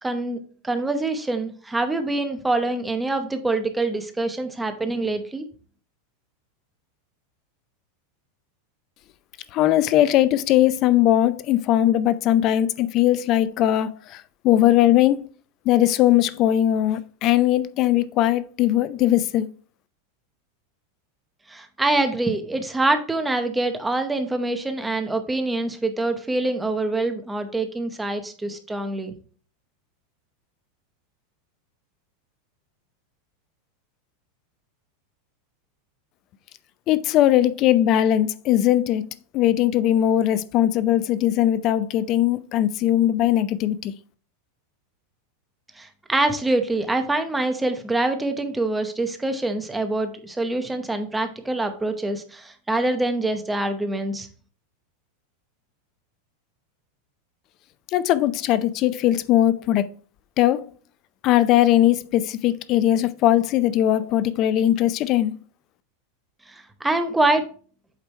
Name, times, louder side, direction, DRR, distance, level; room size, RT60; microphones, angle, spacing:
voice 1, 0.0-5.5 21.5-29.1 45.8-54.3 66.5-67.4, right 2 dB, 5° right, 0.8 m, -25 dB
voice 2, 9.5-15.3 15.7-19.5 36.9-43.9 57.9-59.9 60.4-60.7 61.2-65.3, left 12 dB, 35° left, 0.4 m, -20 dB
8.2 x 3.3 x 4.4 m
supercardioid pair, 160°, 0 cm